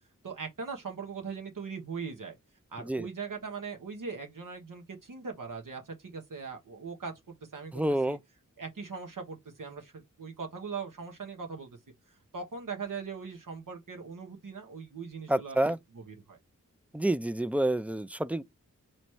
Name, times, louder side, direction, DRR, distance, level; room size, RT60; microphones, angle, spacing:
voice 1, 0.2-2.4 2.7-8.2 8.6-11.8 12.1-16.4, right 5 dB, 80° right, 1.0 m, -40 dB
voice 2, 7.7-8.2 15.3-15.8 16.9-18.4, right 1 dB, 5° right, 0.3 m, -28 dB
3.1 x 3.1 x 4.5 m
wide cardioid pair, 50°, 32 cm